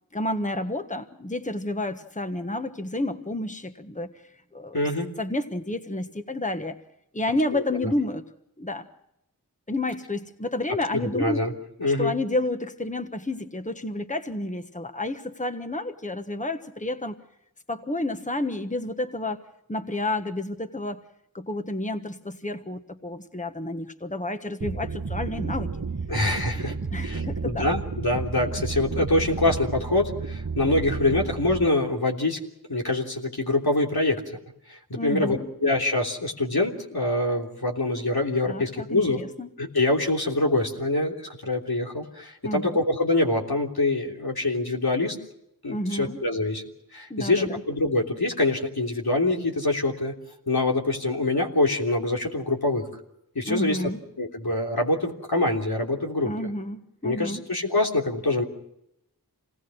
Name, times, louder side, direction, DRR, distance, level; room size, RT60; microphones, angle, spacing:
voice 1, 0.1-4.1 4.5-4.8 5.2-6.8 7.1-8.2 8.6-8.9 9.7-11.4 11.8-17.2 17.7-19.4 19.7-21.0 21.3-25.7 26.6-27.7 34.9-35.5 38.5-39.5 42.4-42.8 45.7-46.2 47.1-47.6 53.5-54.0 56.2-57.4, left 1 dB, 20° left, 7 dB, 1.3 m, -30 dB
voice 2, 4.7-5.1 7.5-7.9 11.0-11.5 11.8-12.1 26.1-26.7 27.0-32.4 32.7-34.2 34.7-39.2 39.6-45.2 45.6-46.6 46.9-50.1 50.5-52.9 53.3-53.8 54.2-56.3 57.0-58.4, left 2 dB, 85° left, 0 dB, 3.3 m, -25 dB
sound 1, 24.6-31.7, right 4 dB, 55° right, 1.2 m, -32 dB
27.0 x 19.5 x 6.3 m, 0.81 s
wide cardioid pair, 45°, 36 cm